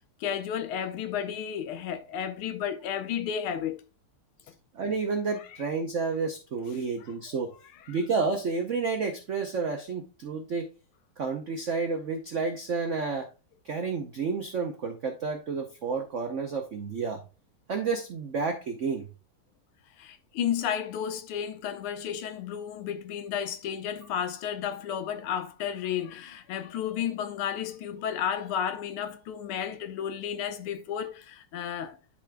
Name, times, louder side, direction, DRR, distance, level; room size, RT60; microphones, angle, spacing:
voice 1, 0.2-3.8 7.9-8.0 20.0-32.0, left 9 dB, 80° left, 1.6 m, -32 dB
voice 2, 4.7-7.5 7.9-10.7 11.2-13.3 13.6-17.2 17.7-19.1, right 4 dB, 75° right, 0.6 m, -30 dB
12.0 x 4.3 x 2.2 m
omnidirectional pair, 2.4 m